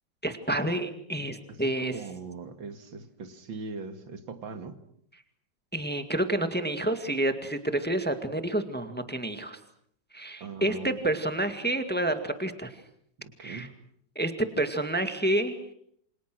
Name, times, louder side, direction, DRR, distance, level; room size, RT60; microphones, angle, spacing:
voice 1, 0.2-2.0 5.7-9.6 10.1-12.8 13.4-13.7 14.2-15.6, right 1 dB, 5° left, 8 dB, 1.8 m, -29 dB
voice 2, 1.5-4.8 10.4-11.0 13.2-13.7, right 4 dB, 75° right, 9 dB, 2.7 m, -40 dB
28.0 x 26.5 x 6.3 m, 0.68 s
omnidirectional pair, 2.1 m